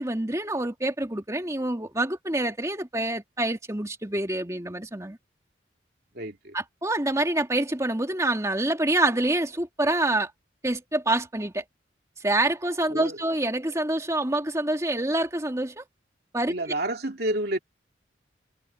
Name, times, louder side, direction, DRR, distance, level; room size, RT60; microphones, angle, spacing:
voice 1, 0.0-5.2 6.5-10.3 10.6-11.6 12.2-15.8 16.3-16.5, right 1 dB, 15° right, 2.4 m, -26 dB
voice 2, 6.1-6.5 12.9-13.2 16.5-17.6, right 1 dB, 55° right, 2.9 m, -29 dB
head